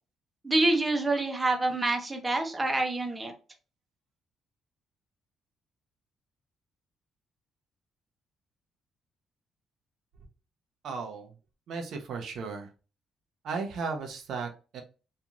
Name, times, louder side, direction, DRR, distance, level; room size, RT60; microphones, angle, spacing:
voice 1, 0.4-3.3, right 2 dB, 20° right, 4 dB, 0.7 m, -27 dB
voice 2, 10.8-11.3 11.7-12.7 13.4-14.8, right 4 dB, 70° right, 4 dB, 0.5 m, -35 dB
2.9 x 2.5 x 2.4 m, 0.34 s
cardioid pair, 90°, 0 cm